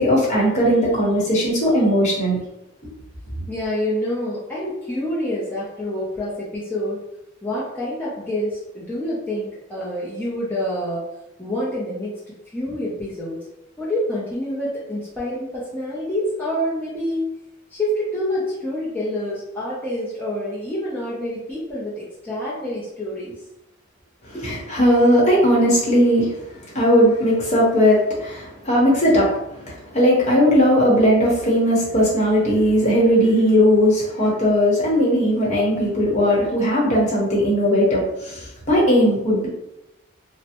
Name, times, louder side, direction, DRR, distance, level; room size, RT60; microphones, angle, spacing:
voice 1, 0.0-2.4 24.4-26.4 26.7-29.3 29.9-39.5, equal, 35° left, -5 dB, 1.0 m, -18 dB
voice 2, 3.5-7.0 7.4-11.1 11.4-13.5 13.8-17.3 17.7-23.3 24.3-24.6, left 1 dB, 10° left, -9 dB, 0.5 m, -27 dB
3.2 x 2.1 x 2.8 m, 0.88 s
head